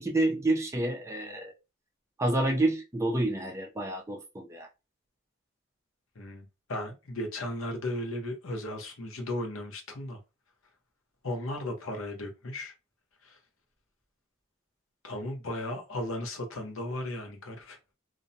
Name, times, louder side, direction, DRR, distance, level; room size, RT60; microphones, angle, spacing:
voice 1, 0.0-1.5 2.2-4.7, right 2 dB, 15° right, 0.4 m, -28 dB
voice 2, 6.2-10.2 11.2-12.7 13.2-13.4 15.0-17.8, left 1 dB, 75° left, 0.8 m, -36 dB
2.5 x 2.0 x 2.6 m
head